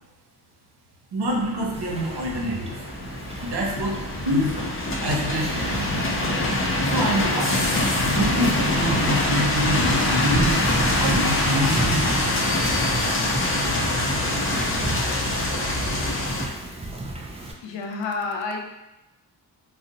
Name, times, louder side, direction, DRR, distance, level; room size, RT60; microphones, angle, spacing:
voice 1, 1.1-2.7 3.4-4.7 5.0-5.8 6.9-7.6 8.0-10.7 11.0-12.2, equal, 65° right, -2 dB, 0.9 m, -26 dB
sound 1, 1.3-16.5, left 1 dB, 30° left, 0.5 m, -24 dB
Wind / Ocean, 1.7-17.5, right 2 dB, 15° right, 0.4 m, -33 dB
voice 2, 17.6-18.6, left 4 dB, 85° left, 2 dB, 0.6 m, -29 dB
2.5 x 2.1 x 3.9 m, 0.98 s
cardioid pair, 70°, 43 cm